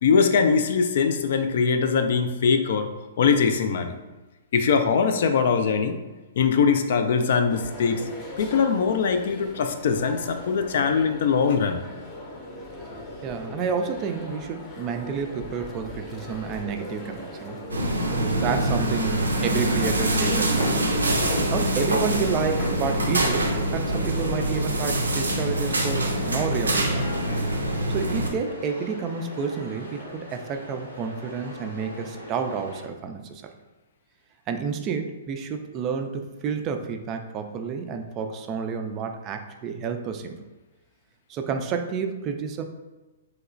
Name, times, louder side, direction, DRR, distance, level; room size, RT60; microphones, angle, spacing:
voice 1, 0.0-2.9 3.2-3.9 4.5-6.0 6.4-8.0 8.4-11.8, left 5 dB, 60° left, 7 dB, 0.3 m, -22 dB
sound 1, 7.5-27.4, left 1 dB, 25° left, 0.6 m, -39 dB
voice 2, 13.2-17.6 18.1-20.9 21.5-27.1 27.9-33.4 34.5-40.4 41.3-42.6, right 6 dB, 30° right, 6 dB, 0.3 m, -30 dB
sound 2, 17.7-28.3, right 1 dB, 85° right, 0.5 m, -25 dB
sound 3, 25.3-32.8, left 1 dB, 90° left, 0.9 m, -40 dB
3.1 x 2.8 x 2.4 m, 1.2 s
hypercardioid pair, 120°, 0 cm